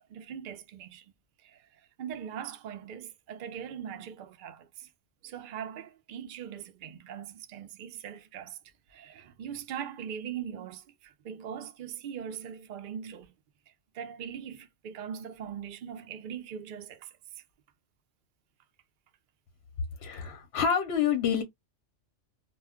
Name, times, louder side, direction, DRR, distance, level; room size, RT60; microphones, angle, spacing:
voice 1, 0.1-1.0 2.0-4.6 5.3-8.5 9.4-10.8 11.3-13.3 14.0-14.6 14.8-16.9, right 8 dB, 60° right, 0.5 m, -40 dB
voice 2, 20.0-21.4, left 7 dB, 65° left, 0.8 m, -27 dB
2.2 x 2.2 x 3.4 m
omnidirectional pair, 1.3 m